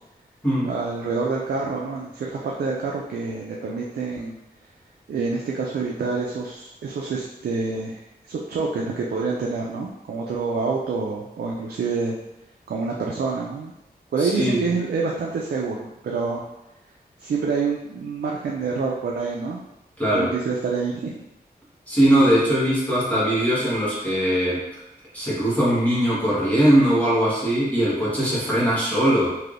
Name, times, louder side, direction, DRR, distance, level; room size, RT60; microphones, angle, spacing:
voice 1, 0.6-4.4 5.1-12.2 12.7-13.7 14.1-16.4 17.2-19.6 20.1-21.1, right 4 dB, 80° right, -2 dB, 0.4 m, -27 dB
voice 2, 14.2-14.6 20.0-20.3 21.9-24.6 25.1-29.3, right 1 dB, 10° left, -9 dB, 1.3 m, -20 dB
3.2 x 2.6 x 2.5 m, 0.88 s
wide cardioid pair, 100°, 16 cm